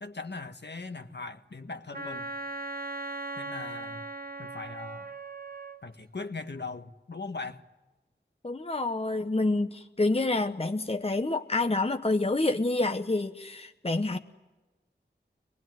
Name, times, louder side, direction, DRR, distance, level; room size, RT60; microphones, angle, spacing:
voice 1, 0.0-2.3 3.4-4.1 4.4-5.1 5.8-7.6, left 3 dB, 65° left, 6 dB, 1.6 m, -40 dB
Wind instrument woodwind instrument, 1.9-5.8, right 2 dB, 50° right, 1.1 m, -38 dB
voice 2, 8.4-14.2, left 2 dB, 30° left, 7 dB, 1.0 m, -28 dB
25.0 x 19.5 x 9.4 m, 1.2 s
wide cardioid pair, 40°, 19 cm